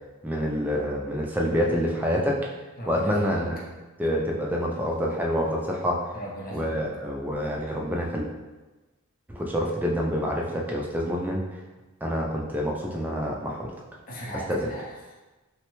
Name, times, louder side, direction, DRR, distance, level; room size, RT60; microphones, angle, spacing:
voice 1, 0.2-2.4 2.9-3.5 4.0-6.0 6.5-8.3 9.3-11.4 12.0-13.7 14.5-14.7, equal, 10° right, -2 dB, 0.3 m, -27 dB
voice 2, 2.8-3.4 6.1-6.8 14.1-15.1, equal, 40° left, -4 dB, 0.6 m, -38 dB
3.5 x 2.1 x 2.9 m, 1.2 s
head